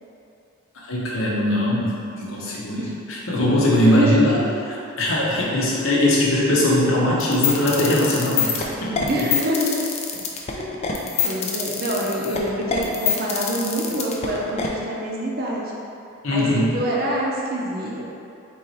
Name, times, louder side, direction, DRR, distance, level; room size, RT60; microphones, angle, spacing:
voice 1, 0.8-4.4 5.0-9.1 16.2-16.7, left 1 dB, 65° left, -5 dB, 0.9 m, -21 dB
voice 2, 3.8-4.4 9.1-9.9 10.6-15.7 16.3-18.0, equal, 45° right, -4 dB, 0.6 m, -25 dB
sound 1, 7.2-14.7, left 7 dB, 30° left, 0.3 m, -25 dB
3.9 x 3.1 x 4.1 m, 2.6 s
head